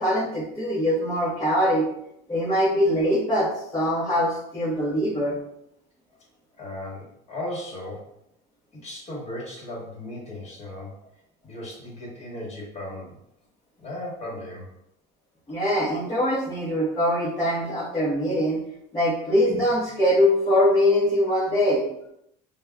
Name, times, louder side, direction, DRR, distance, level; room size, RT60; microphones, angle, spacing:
voice 1, 0.0-1.9 2.3-5.4 15.5-18.6 18.9-21.8, left 1 dB, 15° left, -10 dB, 1.0 m, -22 dB
voice 2, 6.6-8.1 8.8-10.9 11.4-13.2 13.8-14.7, left 1 dB, 35° left, -4 dB, 1.5 m, -36 dB
5.2 x 2.2 x 2.3 m, 0.78 s
cardioid pair, 140°, 19 cm